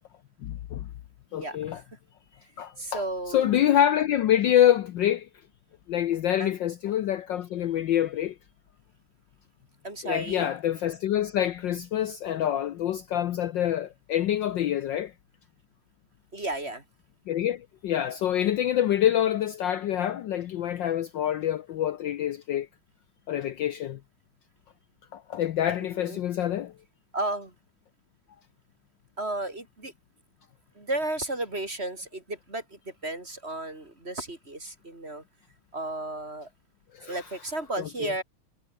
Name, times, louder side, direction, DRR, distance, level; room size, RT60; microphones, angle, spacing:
voice 1, 0.4-0.9 1.3-1.8 2.6-3.0 3.3-5.3 5.9-8.3 10.0-15.1 17.3-22.7 23.3-24.0 25.1-26.7 36.9-37.2 37.8-38.1, left 11 dB, 65° left, 1.3 m, -26 dB
voice 2, 1.3-1.8 2.8-3.5 6.4-6.5 9.8-10.5 16.3-16.8 26.0-26.2 27.1-27.5 29.2-29.9 30.8-35.2 35.7-36.5 37.1-38.2, right 2 dB, 25° right, 4.5 m, -33 dB
omnidirectional pair, 2.4 m